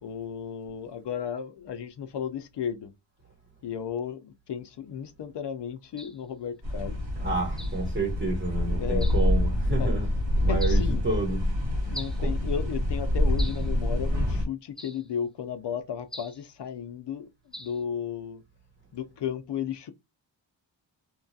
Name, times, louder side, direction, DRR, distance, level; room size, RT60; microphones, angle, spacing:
voice 1, 0.0-2.9 3.6-7.0 8.8-9.1 9.8-9.9 10.4-11.0 11.9-18.4 18.9-19.9, left 8 dB, 65° left, 0.6 m, -34 dB
sound 1, 6.0-6.2 7.6-7.8 9.0-9.3 10.6-10.9 11.9-12.2 13.4-13.7 14.8-15.1 16.1-16.4 17.5-17.8, equal, ahead, 0.5 m, -42 dB
sound 2, 6.6-14.5, left 1 dB, 80° right, 1.5 m, -26 dB
voice 2, 7.2-10.1 10.4-11.4 12.2-12.3, right 2 dB, 25° right, 1.0 m, -30 dB
2.9 x 2.3 x 2.6 m
wide cardioid pair, 90°, 45 cm